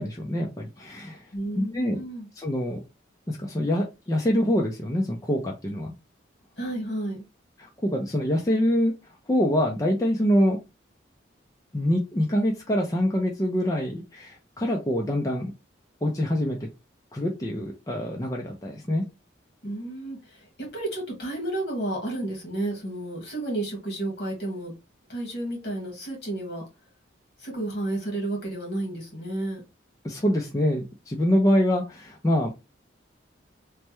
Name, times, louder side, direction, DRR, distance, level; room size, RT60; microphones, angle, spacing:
voice 1, 0.0-1.3 1.6-2.0 2.4-2.8 3.3-5.9 7.6-8.9 9.3-10.6 11.7-15.5 16.0-16.6 17.1-19.0 30.0-32.5, equal, 20° left, 0.4 m, -25 dB
voice 2, 1.3-2.3 6.6-7.2 19.6-24.7 25.1-26.6 27.4-29.6, right 1 dB, 60° left, 1.5 m, -31 dB
3.3 x 2.1 x 2.9 m
head